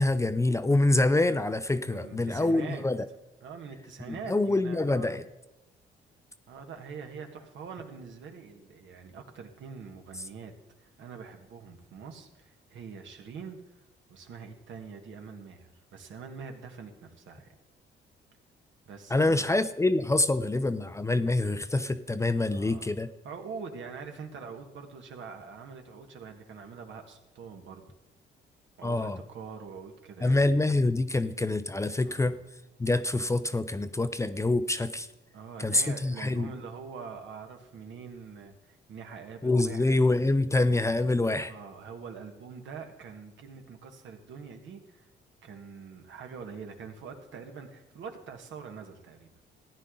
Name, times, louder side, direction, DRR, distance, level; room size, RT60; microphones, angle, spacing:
voice 1, 0.0-3.0 4.3-5.2 19.1-23.1 28.8-29.2 30.2-32.4 32.8-35.1 35.6-36.5 39.4-41.5, left 2 dB, 15° left, 12 dB, 0.5 m, -26 dB
voice 2, 1.8-2.8 3.4-5.2 6.5-10.5 10.8-13.6 14.1-17.5 18.9-19.5 22.5-22.9 23.2-27.8 28.8-30.4 32.0-32.3 35.3-40.0 41.2-45.1 45.4-49.3, right 5 dB, 70° right, 4 dB, 1.7 m, -44 dB
14.5 x 9.9 x 3.9 m, 0.98 s
cardioid pair, 90°, 20 cm